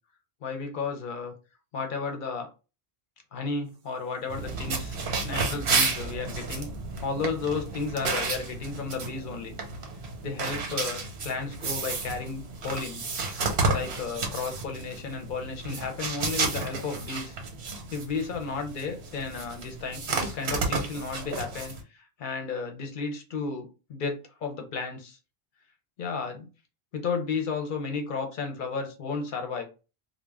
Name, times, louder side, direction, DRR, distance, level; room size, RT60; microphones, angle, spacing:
voice 1, 0.4-1.3 1.7-2.5 3.3-6.7 7.0-9.5 10.2-13.0 13.7-17.4 17.9-25.2 26.0-26.4 26.9-29.7, left 4 dB, 55° left, 4 dB, 0.8 m, -33 dB
sound 1, 4.3-21.8, right 3 dB, 75° right, 1.0 m, -32 dB
2.3 x 2.1 x 3.3 m, 0.31 s
omnidirectional pair, 1.1 m